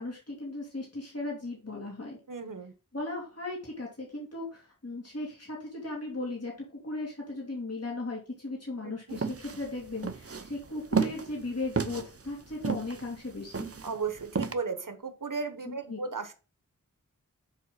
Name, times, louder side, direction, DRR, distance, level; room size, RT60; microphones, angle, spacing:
voice 1, 0.0-2.2 2.9-6.5 6.8-13.7 15.6-16.0, left 2 dB, 50° left, -3 dB, 3.0 m, -37 dB
voice 2, 2.3-2.7 8.8-8.9 13.8-16.3, right 4 dB, 80° right, 9 dB, 1.1 m, -35 dB
sound 1, 9.1-14.5, right 5 dB, 45° right, 0.7 m, -32 dB
7.4 x 4.0 x 5.5 m, 0.34 s
wide cardioid pair, 50°, 32 cm